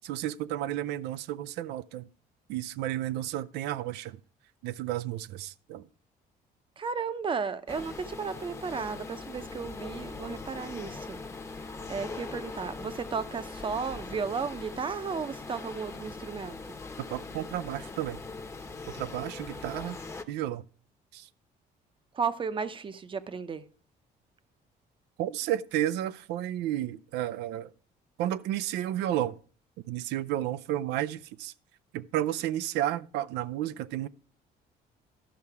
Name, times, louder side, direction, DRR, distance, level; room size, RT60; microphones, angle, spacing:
voice 1, 0.0-2.1 2.5-4.2 4.6-5.9 17.1-18.2 18.9-20.0 20.3-20.6 21.1-21.3 25.2-27.7 28.2-29.4 29.9-31.5 31.9-34.1, right 13 dB, 85° right, 0.5 m, -32 dB
voice 2, 6.8-11.2 11.9-16.6 22.1-23.6, right 5 dB, 30° right, 0.7 m, -34 dB
sound 1, 7.7-20.2, left 3 dB, 15° left, 0.9 m, -41 dB
12.5 x 5.6 x 4.7 m
cardioid pair, 110°, 17 cm